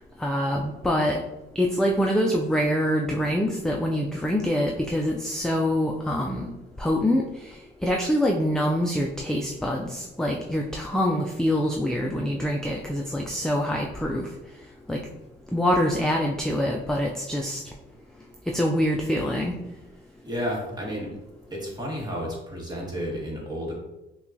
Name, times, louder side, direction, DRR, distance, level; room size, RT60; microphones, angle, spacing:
voice 1, 0.2-1.2 1.6-14.3 14.9-15.0 15.5-17.6 18.5-19.5, equal, 5° left, 0 dB, 0.3 m, -25 dB
voice 2, 20.2-21.1 21.5-23.7, equal, 20° right, -3 dB, 1.4 m, -31 dB
5.5 x 2.3 x 2.6 m, 0.96 s
cardioid pair, 90°, 20 cm